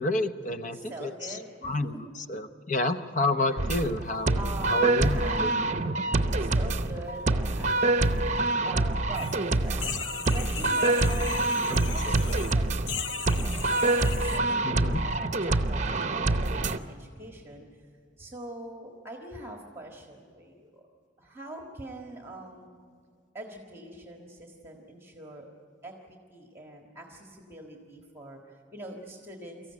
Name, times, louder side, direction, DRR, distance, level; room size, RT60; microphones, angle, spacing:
voice 1, 0.0-1.4 1.6-2.0 2.3-4.4 4.7-5.6 11.7-12.4 14.6-15.0, left 2 dB, 40° left, 9 dB, 0.9 m, -30 dB
voice 2, 0.7-1.8 3.4-3.7 4.3-5.4 6.0-8.2 8.6-11.4 11.9-13.0 13.3-17.6 18.2-20.8 21.2-22.7 23.3-25.5 25.8-29.7, right 1 dB, 15° right, 2 dB, 1.6 m, -43 dB
sound 1, 3.6-16.8, right 2 dB, 40° right, 0.8 m, -26 dB
sound 2, 9.1-9.4 9.7-12.5 12.9-14.4, left 7 dB, 85° left, 0.9 m, -37 dB
24.0 x 14.5 x 9.7 m, 2.2 s
head